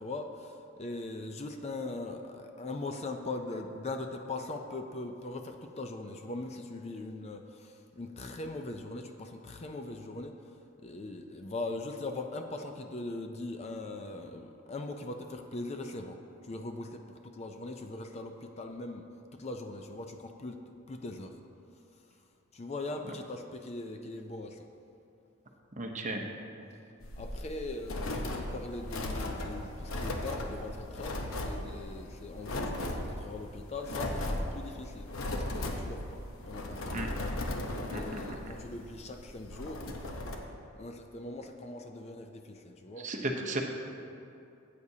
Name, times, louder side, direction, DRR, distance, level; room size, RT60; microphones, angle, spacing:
voice 1, 0.0-10.5 10.8-19.1 19.3-20.6 20.9-21.4 22.5-24.7 27.2-37.1 37.9-39.9 40.8-43.1, left 2 dB, 30° left, 5 dB, 0.4 m, -40 dB
voice 2, 25.8-26.3 36.9-37.1 37.9-38.0 43.0-43.6, right 2 dB, 35° right, 2 dB, 0.8 m, -34 dB
sound 1, 27.0-40.4, left 1 dB, 70° left, 0.9 m, -37 dB
14.0 x 8.3 x 2.8 m, 2.7 s
head